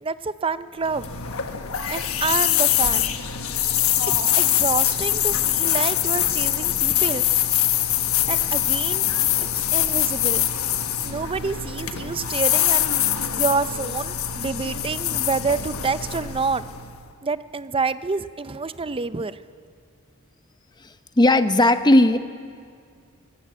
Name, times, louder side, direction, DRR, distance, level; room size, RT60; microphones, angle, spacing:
voice 1, 0.0-1.1 1.9-3.1 4.1-7.3 8.3-9.1 9.7-10.5 11.0-12.8 13.3-16.6 17.2-19.4, right 4 dB, 25° right, 14 dB, 0.6 m, -27 dB
sound 1, 0.8-17.0, left 11 dB, 70° left, 1.3 m, -23 dB
voice 2, 21.2-22.2, left 1 dB, 20° left, 10 dB, 0.8 m, -16 dB
25.0 x 17.0 x 8.2 m, 2.2 s
head